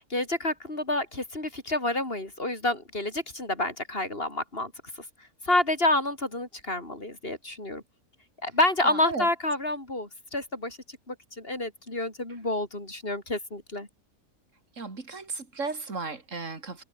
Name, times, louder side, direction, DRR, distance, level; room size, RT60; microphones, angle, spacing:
voice 1, 0.0-4.7 5.4-7.8 8.4-13.9, left 2 dB, 35° left, 5.4 m, -29 dB
voice 2, 8.8-9.3 14.8-16.8, right 4 dB, 50° right, 3.7 m, -34 dB
omnidirectional pair, 1.6 m